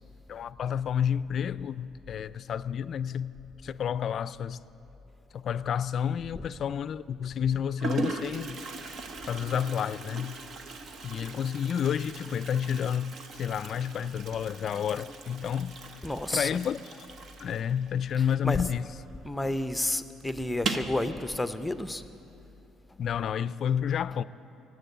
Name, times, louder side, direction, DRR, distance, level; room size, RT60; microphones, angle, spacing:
voice 1, 0.3-3.3 3.6-4.6 5.3-8.6 9.3-10.4 11.0-15.7 16.3-16.8 17.4-18.9 23.0-24.2, left 8 dB, 55° left, 0.3 m, -30 dB
Toilet flush, 6.3-6.8 7.5-7.6 7.8-19.1 19.3-19.4 19.7-19.8 20.5-21.0, right 3 dB, 55° right, 1.0 m, -39 dB
voice 2, 16.0-16.6 18.2-18.7 19.2-22.0 22.9-23.0 24.1-24.2, left 1 dB, 5° left, 0.6 m, -31 dB
18.5 x 8.0 x 8.2 m
cardioid pair, 105°, 0 cm